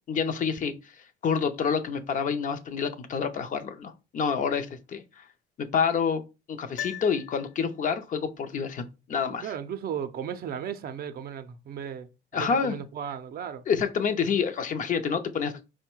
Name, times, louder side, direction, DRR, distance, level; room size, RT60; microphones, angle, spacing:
voice 1, 0.1-0.7 1.2-5.0 5.6-6.2 6.5-9.5 12.3-12.7 13.7-15.6, left 6 dB, 40° left, 0.6 m, -28 dB
Piano, 6.7-8.0 8.3-8.4, left 12 dB, 90° left, 0.8 m, -39 dB
voice 2, 9.4-12.1 12.3-13.6, right 8 dB, 50° right, 0.5 m, -35 dB
4.6 x 2.2 x 4.4 m
cardioid pair, 125°, 20 cm